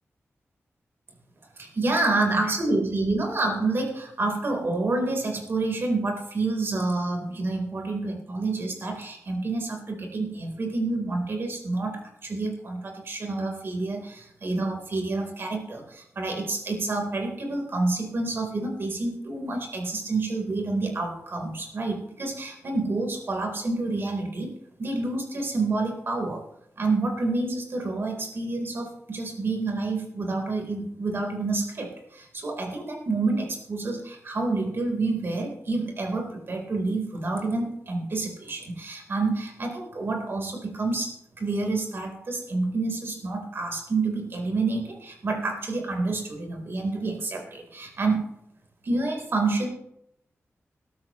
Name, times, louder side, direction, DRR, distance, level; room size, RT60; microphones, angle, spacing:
voice 1, 1.6-24.5 24.8-26.4 26.8-48.2 48.8-49.7, right 3 dB, 50° right, 2 dB, 3.8 m, -28 dB
22.0 x 13.0 x 3.1 m, 0.76 s
wide cardioid pair, 175°, 5 cm